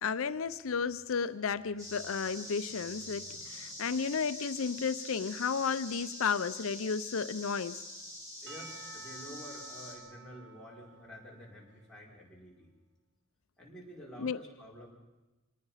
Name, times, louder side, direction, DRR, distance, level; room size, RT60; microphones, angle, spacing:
voice 1, 0.0-7.8 14.2-14.4, left 6 dB, 85° left, 13 dB, 0.6 m, -33 dB
sound 1, 1.8-9.9, left 1 dB, 15° right, 6.3 m, -45 dB
voice 2, 8.4-12.7 13.6-14.9, equal, 5° left, -5 dB, 5.2 m, -50 dB
Percussion / Church bell, 8.5-12.1, right 5 dB, 60° right, 1.7 m, -52 dB
26.5 x 19.0 x 5.7 m, 1.1 s
head